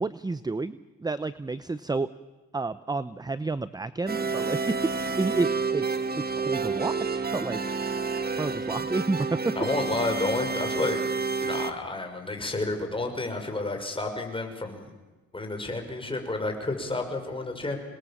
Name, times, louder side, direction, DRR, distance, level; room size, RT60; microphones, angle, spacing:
voice 1, 0.0-2.1 2.5-6.1 6.4-7.8 8.4-9.5, right 3 dB, 15° right, 14 dB, 0.7 m, -30 dB
sound 1, 4.1-11.7, right 4 dB, 30° right, 1.9 m, -29 dB
voice 2, 9.6-11.0 11.4-14.9 15.3-17.8, left 2 dB, 15° left, 4 dB, 6.0 m, -30 dB
27.5 x 21.0 x 7.4 m, 1.2 s
cardioid pair, 90°, 30 cm